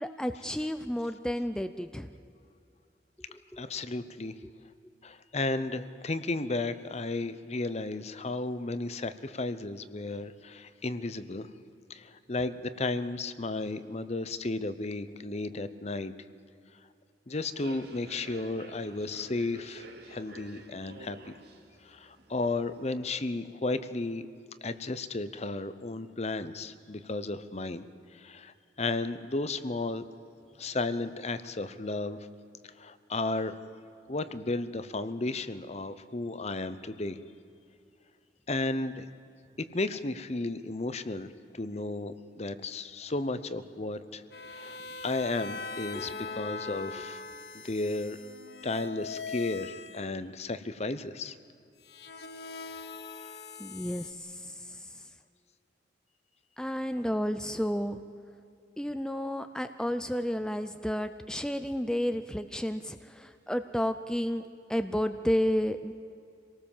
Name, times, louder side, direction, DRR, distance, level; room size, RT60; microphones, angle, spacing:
voice 1, 0.0-2.1 3.5-3.6 53.6-54.8 56.6-58.0 58.8-64.4 64.7-65.9, equal, 5° left, 9 dB, 0.5 m, -31 dB
voice 2, 3.6-4.3 5.0-11.5 11.9-16.1 17.3-21.2 21.8-24.2 24.6-27.8 28.1-30.0 30.6-32.2 32.8-33.6 34.1-37.2 38.5-39.1 39.6-41.3 41.5-44.2 44.5-47.2 47.6-48.2 48.6-51.4, left 2 dB, 35° left, 13 dB, 0.8 m, -34 dB
Human voice / Subway metro underground, 17.4-22.9, right 2 dB, 60° right, 2.3 m, -50 dB
sound 1, 44.3-50.0 51.8-54.1, left 4 dB, 60° left, 1.2 m, -41 dB
26.0 x 18.5 x 7.3 m, 2.6 s
head